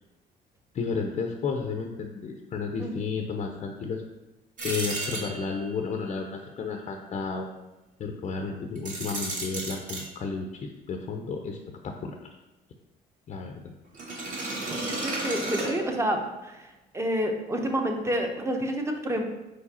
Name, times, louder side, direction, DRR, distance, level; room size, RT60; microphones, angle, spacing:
voice 1, 0.7-4.0 4.6-7.5 8.0-11.6 11.8-12.3 13.3-13.7, left 5 dB, 40° left, 3 dB, 0.6 m, -32 dB
sound 1, 4.6-5.7 8.8-10.0 13.9-16.2, right 2 dB, 50° right, 2.0 m, -33 dB
voice 2, 14.7-19.3, equal, 15° right, 3 dB, 0.9 m, -29 dB
4.8 x 4.7 x 4.2 m, 1.0 s
cardioid pair, 110°, 17 cm